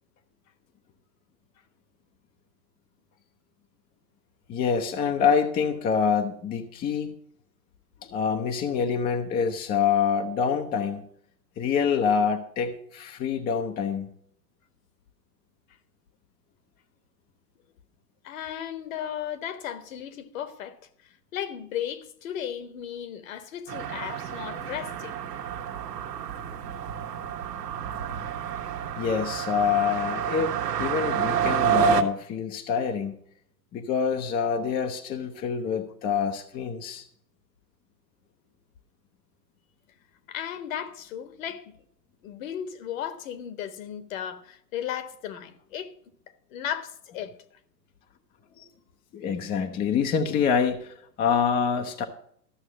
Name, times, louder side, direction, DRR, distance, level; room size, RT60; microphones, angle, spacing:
voice 1, 4.5-7.1 8.0-11.0 11.6-14.1 29.0-33.2 33.7-37.1 48.6-48.7 49.1-52.0, left 6 dB, 20° left, 0.7 m, -26 dB
voice 2, 18.2-20.8 21.0-25.2 40.3-41.8 42.2-45.9 46.5-47.4, left 10 dB, 50° left, 1.5 m, -35 dB
sound 1, 23.7-32.0, right 10 dB, 70° right, 1.6 m, -29 dB
14.0 x 6.5 x 6.2 m
hypercardioid pair, 110°, 50 cm